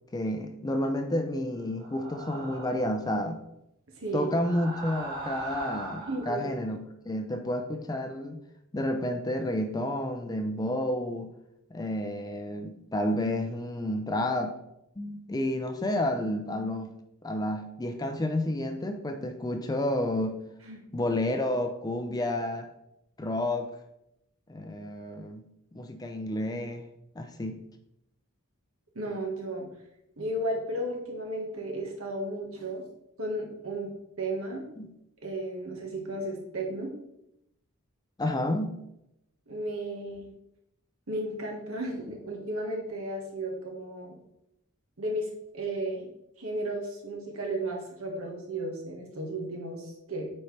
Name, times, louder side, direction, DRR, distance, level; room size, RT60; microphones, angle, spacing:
voice 1, 0.1-3.4 4.1-6.8 7.1-8.4 8.7-11.3 11.7-14.6 15.0-16.9 17.2-20.4 20.9-22.7 23.2-23.7 24.5-25.4 25.7-26.9 27.2-27.6 34.8-34.9 38.2-38.8, left 1 dB, 20° left, 6 dB, 0.4 m, -30 dB
sound 1, 1.8-3.0 4.2-6.4, right 2 dB, 45° right, 2.0 m, -39 dB
voice 2, 3.9-4.3 6.1-6.5 20.6-20.8 28.9-29.7 30.2-32.9 33.2-34.7 35.2-36.9 39.5-40.3 41.1-44.1 45.0-46.1 46.4-50.3, right 1 dB, 80° right, 0 dB, 1.5 m, -34 dB
8.9 x 4.4 x 3.3 m, 0.83 s
head